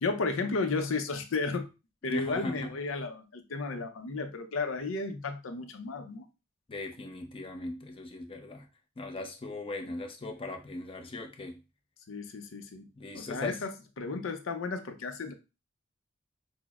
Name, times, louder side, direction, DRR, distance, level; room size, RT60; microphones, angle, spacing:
voice 1, 0.0-1.7 2.0-6.3 12.1-12.9 13.1-13.7 14.0-15.3, left 3 dB, 90° left, 0.6 m, -33 dB
voice 2, 2.1-2.7 6.7-8.7 9.0-11.6 13.0-13.6, left 2 dB, 30° left, 0.6 m, -38 dB
5.9 x 2.0 x 2.3 m
head